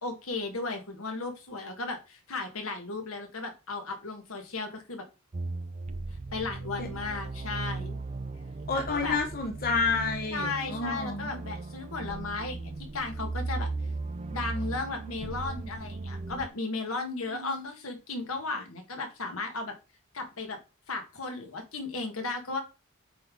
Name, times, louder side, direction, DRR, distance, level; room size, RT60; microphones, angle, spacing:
voice 1, 0.0-5.1 6.1-8.0 8.7-9.2 10.3-13.7 14.3-19.7 20.1-20.6 20.9-22.6, left 3 dB, 70° left, 4 dB, 1.7 m, -35 dB
sound 1, 5.3-16.5, right 3 dB, 30° right, 0.4 m, -37 dB
voice 2, 8.7-11.4 17.3-17.7, left 4 dB, 45° left, 2 dB, 1.0 m, -30 dB
8.3 x 3.8 x 3.8 m, 0.28 s
head